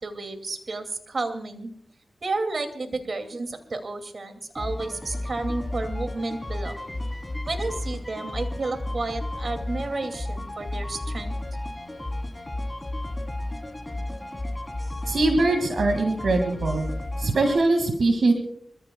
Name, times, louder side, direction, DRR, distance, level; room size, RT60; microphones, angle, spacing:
voice 1, 0.0-1.7 2.2-6.8 7.5-11.4, right 3 dB, 60° right, 7 dB, 2.4 m, -31 dB
sound 1, 4.6-17.6, left 1 dB, 20° left, 3.3 m, -32 dB
voice 2, 15.1-16.9 17.2-18.3, right 2 dB, 80° right, 5 dB, 2.1 m, -22 dB
26.5 x 15.0 x 2.3 m, 0.66 s
cardioid pair, 45°, 0 cm